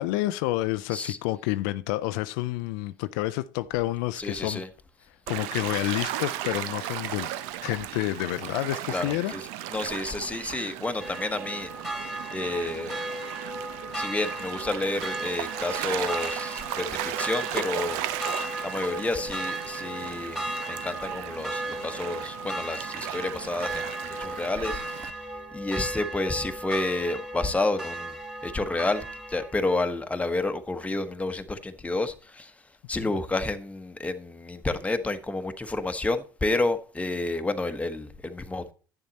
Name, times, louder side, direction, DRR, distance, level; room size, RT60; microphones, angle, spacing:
voice 1, 0.0-4.6 5.3-7.3 7.6-9.3 33.0-33.1, left 17 dB, 75° left, 0.5 m, -29 dB
voice 2, 4.2-4.7 8.9-11.7 12.3-13.0 13.9-18.0 18.6-20.4 20.7-25.1 25.5-28.2 28.4-32.5 32.9-38.7, left 2 dB, 10° left, 1.2 m, -30 dB
Gull seagull / Waves surf, 5.3-25.1, right 13 dB, 70° right, 0.7 m, -36 dB
sound 1, 11.0-29.7, right 1 dB, 5° right, 2.9 m, -36 dB
11.0 x 7.2 x 4.1 m
hypercardioid pair, 80°, 11 cm